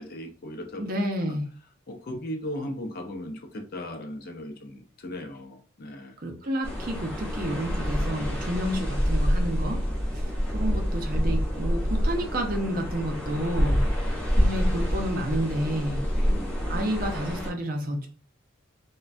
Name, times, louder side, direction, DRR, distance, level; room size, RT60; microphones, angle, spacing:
voice 1, 0.0-0.9 1.3-1.4 1.9-6.2 16.1-16.8, left 1 dB, 45° left, 4 dB, 0.5 m, -37 dB
voice 2, 0.8-1.5 6.2-9.8 10.1-13.9 14.4-16.1 16.7-18.1, equal, 45° right, 3 dB, 0.5 m, -30 dB
sound 1, 6.6-17.5, equal, 5° left, 1.0 m, -27 dB
3.2 x 2.2 x 2.4 m, 0.40 s
head